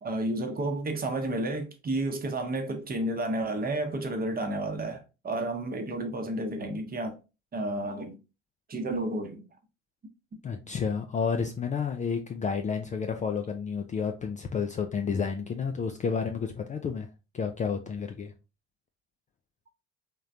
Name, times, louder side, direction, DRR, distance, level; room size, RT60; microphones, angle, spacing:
voice 1, 0.0-7.1 7.5-8.2 8.7-9.5, right 1 dB, 25° right, 0.9 m, -31 dB
voice 2, 10.4-17.1 17.3-18.3, left 6 dB, 20° left, 0.4 m, -30 dB
3.6 x 3.2 x 2.6 m
figure-of-eight pair, 55°, 34 cm